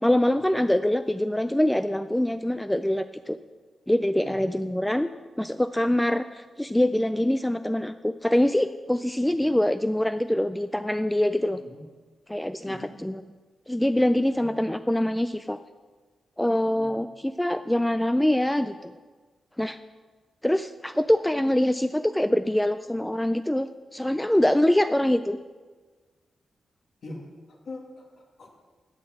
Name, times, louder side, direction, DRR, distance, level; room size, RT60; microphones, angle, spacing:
voice 1, 0.0-3.4 3.9-5.1 5.4-11.6 12.3-13.2 13.7-15.6 16.4-18.9 19.6-19.8 20.4-25.4, left 1 dB, 5° left, 10 dB, 0.3 m, -24 dB
voice 2, 14.3-14.7 16.7-17.1 27.0-28.5, left 2 dB, 60° left, 0 dB, 2.3 m, -43 dB
12.0 x 7.8 x 7.7 m, 1.4 s
wide cardioid pair, 150°, 0 cm